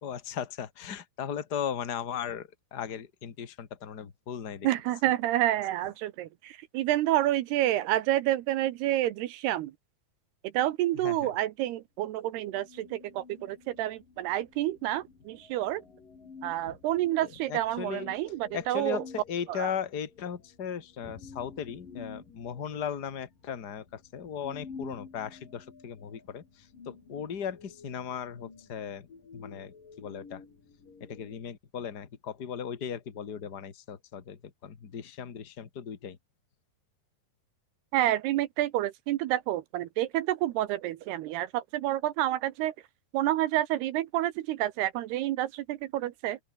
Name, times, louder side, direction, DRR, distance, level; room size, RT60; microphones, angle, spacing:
voice 1, 0.0-4.7 11.0-11.3 16.7-16.8 17.2-18.1 18.5-29.1 29.3-30.4 31.1-36.2, left 8 dB, 65° left, 0.9 m, -37 dB
voice 2, 4.6-9.7 10.5-15.8 16.4-19.0 19.5-19.7 37.9-42.7 43.1-46.4, right 14 dB, 75° right, 2.6 m, -29 dB
sound 1, 12.3-31.4, left 5 dB, 45° left, 7.1 m, -51 dB
open air
omnidirectional pair, 5.4 m